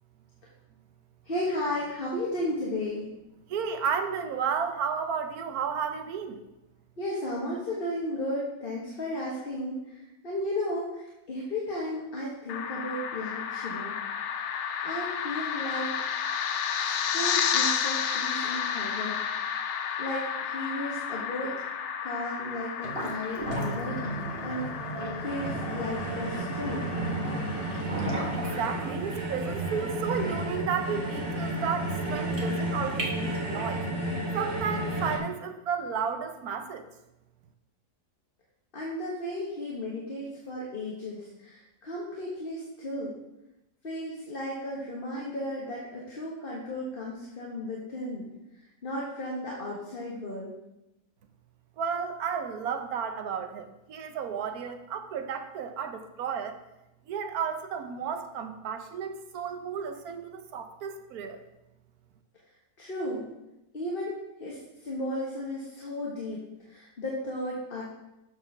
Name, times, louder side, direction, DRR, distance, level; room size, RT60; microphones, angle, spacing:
voice 1, 1.2-3.0 7.0-13.9 14.8-15.9 17.1-19.2 20.0-21.5 22.0-24.1 24.4-24.7 25.2-26.9 38.7-43.1 43.8-48.3 48.8-50.5 62.8-63.2 63.7-66.4 66.7-67.8, left 1 dB, 40° left, -4 dB, 1.4 m, -34 dB
voice 2, 3.5-6.4 28.3-33.8 34.3-36.9 51.8-56.6 57.1-61.4, right 6 dB, 75° right, 8 dB, 1.2 m, -33 dB
sound 1, 12.5-27.8, left 7 dB, 65° left, 0.8 m, -32 dB
sound 2, 22.8-33.8, right 1 dB, 35° right, 1.6 m, -36 dB
sound 3, 25.2-35.2, right 1 dB, 55° right, 2.2 m, -32 dB
7.6 x 4.6 x 5.9 m, 0.93 s
omnidirectional pair, 1.6 m